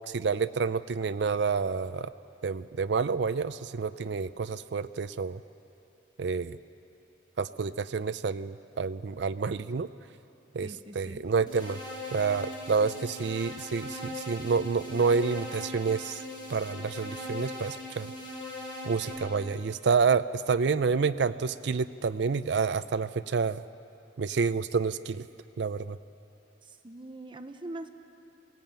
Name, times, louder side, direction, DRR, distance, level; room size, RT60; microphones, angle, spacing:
voice 1, 0.1-2.1 2.4-5.4 6.2-6.6 7.4-9.9 10.5-10.7 10.9-11.8 12.1-16.2 16.5-18.1 18.9-23.6 24.2-25.3 25.6-26.0, right 5 dB, 65° right, 12 dB, 0.5 m, -28 dB
voice 2, 10.6-11.2 26.6-27.9, right 1 dB, 25° right, 8 dB, 0.8 m, -42 dB
sound 1, 11.5-19.1, left 1 dB, 25° left, 7.0 m, -40 dB
22.5 x 17.0 x 8.9 m, 2.8 s
head